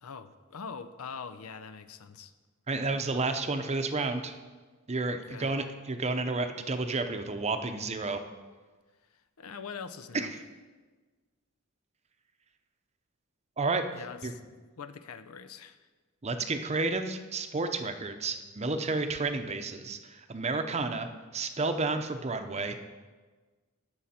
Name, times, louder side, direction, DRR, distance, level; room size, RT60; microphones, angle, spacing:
voice 1, 0.0-2.3 5.3-5.5 9.1-10.3 13.9-14.4 14.8-15.9, left 6 dB, 85° left, 11 dB, 0.6 m, -43 dB
voice 2, 2.7-4.3 4.9-8.2 10.1-10.3 13.6-13.8 14.2-14.3 16.2-22.7, right 3 dB, 30° right, 7 dB, 0.7 m, -31 dB
17.0 x 6.3 x 4.3 m, 1.4 s
head